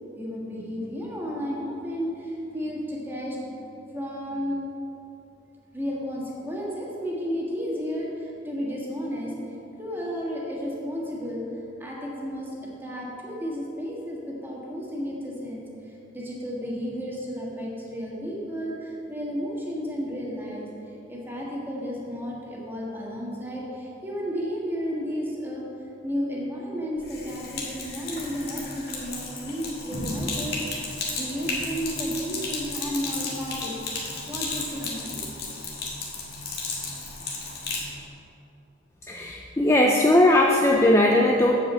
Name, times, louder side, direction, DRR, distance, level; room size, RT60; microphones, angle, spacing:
voice 1, 0.1-4.5 5.7-9.3 9.8-11.4 11.8-12.5 12.8-20.7 21.1-25.6 26.0-33.7 34.3-35.3, equal, 10° right, -4 dB, 1.5 m, -33 dB
Sink (filling or washing), 27.0-37.9, left 3 dB, 55° left, 1.7 m, -33 dB
voice 2, 39.1-41.6, left 1 dB, 15° left, 1 dB, 0.3 m, -19 dB
8.6 x 4.9 x 7.3 m, 2.9 s
head